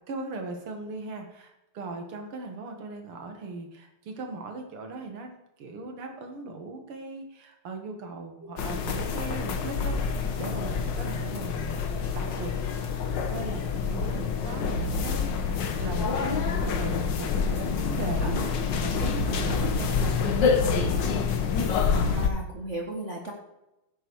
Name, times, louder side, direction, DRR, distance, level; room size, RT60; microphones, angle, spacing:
voice 1, 0.1-12.6 13.3-18.4 18.8-20.9, right 3 dB, 80° right, 4 dB, 2.6 m, -39 dB
sound 1, 8.6-22.3, left 5 dB, 60° left, 1.7 m, -27 dB
voice 2, 18.2-18.7 19.5-19.7 22.0-23.3, right 1 dB, 35° right, 0 dB, 1.7 m, -37 dB
16.0 x 7.9 x 4.7 m, 0.93 s
omnidirectional pair, 2.4 m